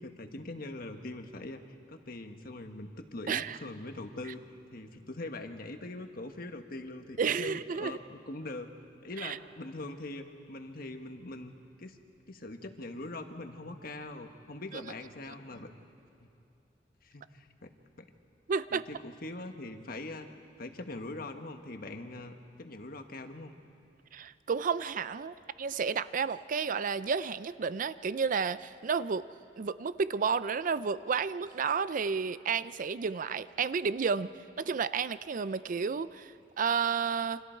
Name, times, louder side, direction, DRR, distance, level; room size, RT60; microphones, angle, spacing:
voice 1, 0.0-4.4 4.7-8.7 9.0-11.5 11.8-12.0 12.3-15.7 16.2-16.3 17.0-18.0 18.7-20.3 20.6-23.5, left 2 dB, 55° left, 6 dB, 1.3 m, -42 dB
voice 2, 3.3-3.6 7.2-8.0 9.2-9.4 18.5-18.8 24.1-29.2 29.6-34.3 34.6-37.4, right 6 dB, 50° right, 15 dB, 0.4 m, -31 dB
28.5 x 25.5 x 4.5 m, 2.6 s
head